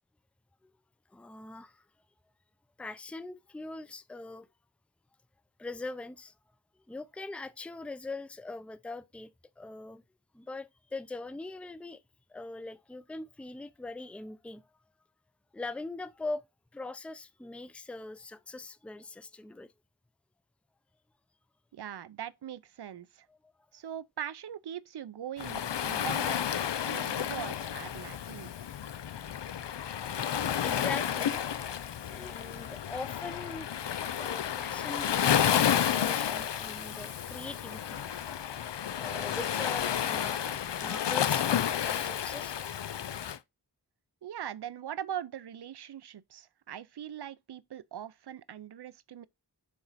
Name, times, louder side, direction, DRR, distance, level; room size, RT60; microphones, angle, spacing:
voice 1, 1.1-1.8 2.8-4.5 5.6-6.3 6.9-10.0 10.3-12.0 12.3-14.7 15.5-16.4 16.7-19.7 23.3-23.5 30.6-31.4 32.1-33.7 34.2-38.3 38.7-42.6, left 2 dB, 5° left, 0.5 m, -42 dB
voice 2, 21.7-23.3 23.7-28.5 44.2-49.3, right 10 dB, 70° right, 0.5 m, -41 dB
Waves surf, 25.4-43.4, left 9 dB, 85° left, 0.5 m, -31 dB
7.0 x 4.1 x 4.0 m
wide cardioid pair, 45°, 41 cm